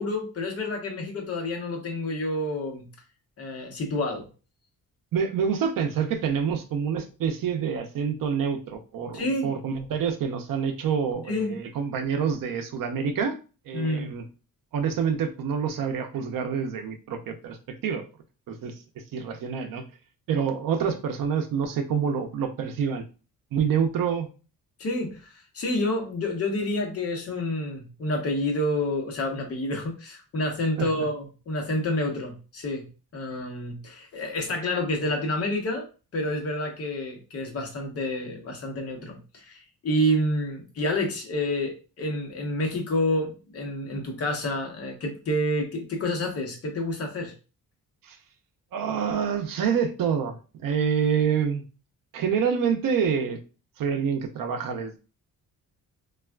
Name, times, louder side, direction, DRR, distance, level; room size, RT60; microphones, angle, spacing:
voice 1, 0.0-2.9 3.4-4.3 9.1-9.5 11.3-11.6 13.7-14.1 24.8-32.8 33.1-35.9 36.1-47.3, left 1 dB, 40° left, 2 dB, 0.8 m, -28 dB
voice 2, 5.1-13.4 13.7-14.2 14.7-17.6 17.8-18.0 18.5-18.7 19.1-19.8 20.3-23.0 23.5-24.3 30.8-30.9 48.1-48.2 48.7-51.6 52.1-53.4 53.8-55.0, right 7 dB, 65° right, 6 dB, 0.6 m, -27 dB
3.3 x 2.4 x 2.2 m, 0.34 s
cardioid pair, 160°, 36 cm